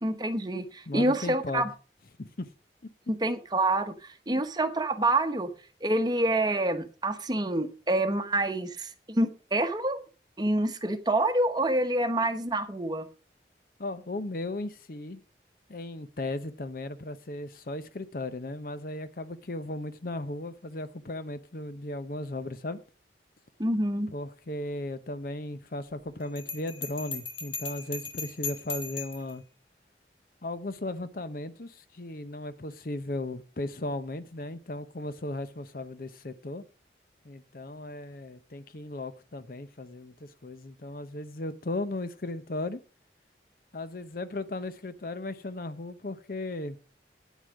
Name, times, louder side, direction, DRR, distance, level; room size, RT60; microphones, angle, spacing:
voice 1, 0.0-1.7 3.1-5.5 5.8-10.0 10.4-13.1 23.6-24.1, right 1 dB, 25° right, 0.9 m, -27 dB
voice 2, 0.9-1.7 2.2-2.5 13.8-15.2 15.7-22.8 24.1-29.4 30.4-36.6 37.2-42.8 43.7-46.8, left 2 dB, 55° left, 0.7 m, -36 dB
Bell, 26.4-29.3, left 4 dB, 30° left, 2.1 m, -37 dB
9.3 x 8.1 x 5.1 m
head